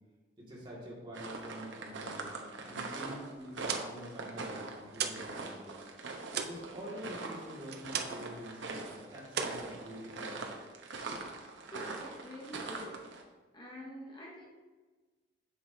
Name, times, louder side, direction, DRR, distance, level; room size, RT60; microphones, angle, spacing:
voice 1, 0.4-5.8 6.4-10.4, equal, 25° right, -5 dB, 1.9 m, -47 dB
sound 1, 1.1-13.2, right 3 dB, 75° right, 0.9 m, -42 dB
sound 2, 3.4-5.3 5.6-8.3 8.6-9.0 9.3-10.4, right 7 dB, 55° right, 0.5 m, -38 dB
voice 2, 11.7-13.2 13.5-14.5, equal, 25° left, -2 dB, 0.8 m, -46 dB
7.5 x 6.2 x 2.7 m, 1.3 s
head